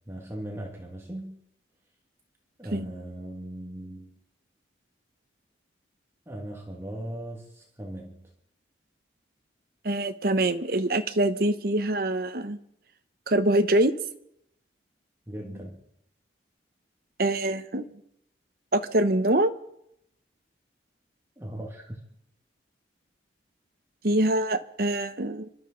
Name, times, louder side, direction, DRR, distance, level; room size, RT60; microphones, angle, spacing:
voice 1, 0.1-1.4 2.6-4.1 6.3-8.3 15.3-15.8 21.4-22.0, right 1 dB, 15° right, -1 dB, 1.9 m, -38 dB
voice 2, 9.8-12.6 13.3-13.9 17.2-17.9 18.7-19.5 24.0-25.5, right 1 dB, 55° right, 9 dB, 1.0 m, -24 dB
28.0 x 12.5 x 3.9 m, 0.77 s
head